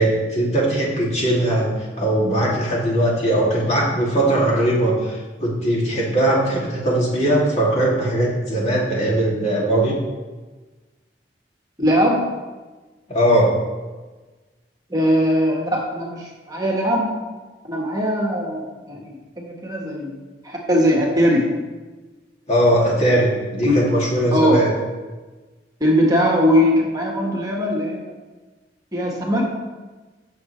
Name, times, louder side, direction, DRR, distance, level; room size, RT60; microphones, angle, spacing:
voice 1, 0.0-1.7 2.0-10.0 13.1-13.5 22.5-24.7, right 1 dB, 40° left, -4 dB, 2.7 m, -19 dB
voice 2, 11.8-12.3 14.9-17.2 17.7-19.1 19.4-20.1 20.4-21.5 23.6-23.7 24.3-24.6 25.8-28.0 28.9-29.4, equal, 20° right, -2 dB, 1.6 m, -20 dB
16.5 x 6.8 x 3.3 m, 1.3 s
head